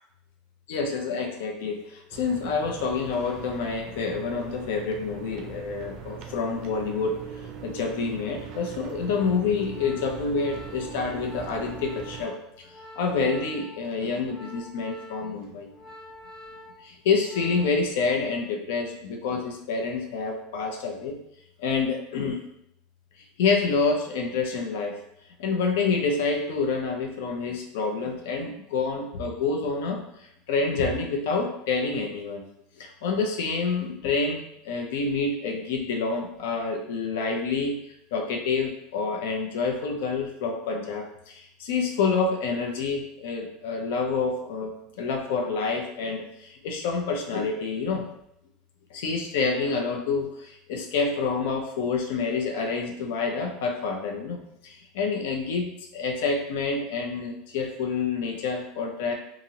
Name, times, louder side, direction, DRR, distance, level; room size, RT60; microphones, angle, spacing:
voice 1, 0.7-7.2 7.6-12.7 13.0-15.7 16.8-21.2 21.6-22.4 23.4-25.0 25.4-30.0 30.5-32.4 32.8-37.8 38.1-48.1 48.9-59.1, left 4 dB, 80° left, 2 dB, 0.5 m, -28 dB
sound 1, 2.1-12.3, right 8 dB, 45° right, 0.4 m, -41 dB
Organ, 8.1-17.9 18.2-18.5, left 1 dB, 20° left, 0.6 m, -47 dB
2.8 x 2.5 x 2.8 m, 0.77 s
supercardioid pair, 165°, 0 cm